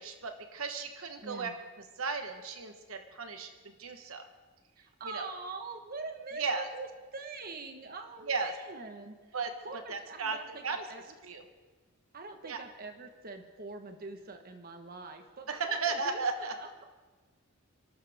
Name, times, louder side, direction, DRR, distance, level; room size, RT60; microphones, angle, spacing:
voice 1, 0.0-1.5 2.0-3.5 3.8-4.3 5.0-5.3 6.4-6.7 8.3-8.5 9.3-9.5 9.9-10.4 10.6-10.9 11.2-11.4 12.4-12.6 15.5-16.5, right 4 dB, 75° right, 6 dB, 1.2 m, -35 dB
voice 2, 1.2-1.6 4.8-9.3 9.6-11.2 12.1-16.7, right 3 dB, 45° right, 5 dB, 1.3 m, -44 dB
28.5 x 12.5 x 3.6 m, 1.3 s
head